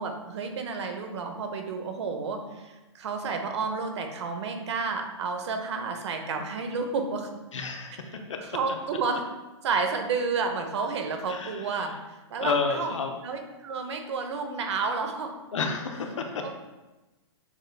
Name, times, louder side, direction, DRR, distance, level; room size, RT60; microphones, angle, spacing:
voice 1, 0.0-7.3 8.4-9.2 9.6-11.9 12.3-13.0 13.2-15.4 16.4-16.6, right 4 dB, 65° right, 5 dB, 0.8 m, -31 dB
voice 2, 7.5-8.4 11.3-11.9 12.4-13.2 15.5-16.4, left 4 dB, 90° left, 4 dB, 0.7 m, -30 dB
7.0 x 3.2 x 2.3 m, 1.1 s
hypercardioid pair, 140°, 15 cm